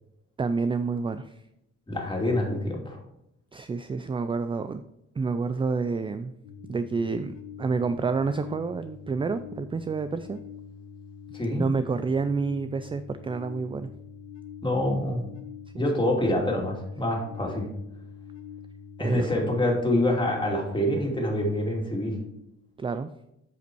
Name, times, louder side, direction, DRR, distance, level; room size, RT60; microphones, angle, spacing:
voice 1, 0.4-1.3 3.5-4.8 5.2-6.3 6.7-10.4 11.6-13.9 15.9-16.1 19.0-19.3 22.8-23.1, right 4 dB, 20° right, 11 dB, 0.3 m, -29 dB
voice 2, 1.9-3.0 11.3-11.6 14.6-15.2 15.7-17.7 19.0-22.2, left 1 dB, 15° left, -1 dB, 2.6 m, -26 dB
sound 1, 6.4-22.3, left 7 dB, 80° left, 1.4 m, -44 dB
8.3 x 5.2 x 4.6 m, 0.81 s
cardioid pair, 90°, 30 cm